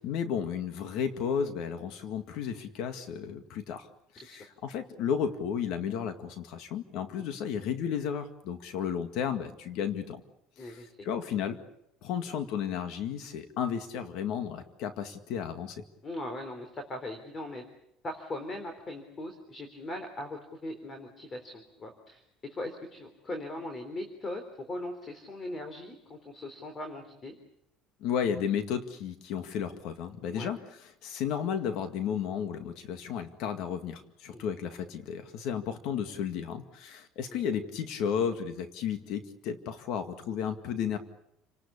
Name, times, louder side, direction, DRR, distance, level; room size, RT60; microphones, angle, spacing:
voice 1, 0.0-3.9 4.3-10.2 10.6-11.6 12.0-15.8 28.0-41.0, left 8 dB, 65° left, 8 dB, 2.0 m, -33 dB
voice 2, 16.0-17.7 18.0-22.2 22.5-27.4 30.3-30.5 34.3-34.4, left 1 dB, 25° left, 7 dB, 3.5 m, -39 dB
30.0 x 19.0 x 8.6 m, 0.81 s
cardioid pair, 145°, 0 cm